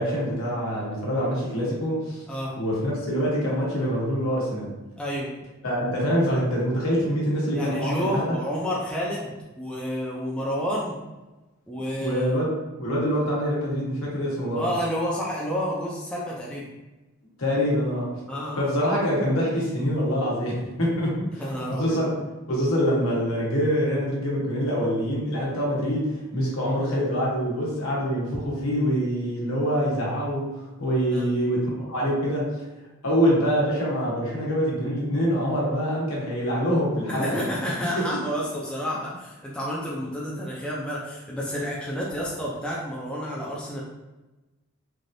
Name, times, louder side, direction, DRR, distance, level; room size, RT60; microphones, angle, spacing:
voice 1, 0.0-2.2 2.6-4.7 5.6-8.4 12.0-12.5 12.8-14.6 17.4-18.2 18.6-21.4 21.7-22.1 22.5-32.5 33.0-37.4, equal, 75° left, -5 dB, 1.0 m, -25 dB
voice 2, 5.0-5.3 7.5-11.0 11.7-12.2 14.6-16.7 18.3-18.7 21.4-22.1 31.1-31.3 37.1-43.8, equal, 5° left, -5 dB, 0.4 m, -30 dB
3.2 x 2.5 x 2.6 m, 1.1 s
head